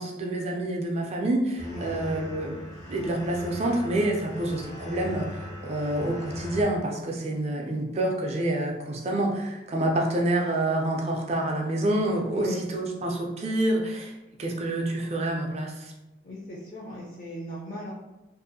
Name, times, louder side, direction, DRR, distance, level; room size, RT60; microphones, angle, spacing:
voice 1, 0.0-2.6 2.9-15.9, right 1 dB, 35° right, 0 dB, 0.4 m, -27 dB
sound 1, 1.6-6.6, left 1 dB, 75° left, 0.9 m, -39 dB
voice 2, 12.3-12.6 16.2-17.9, left 1 dB, 50° left, -5 dB, 0.5 m, -37 dB
2.6 x 2.4 x 2.6 m, 0.99 s
head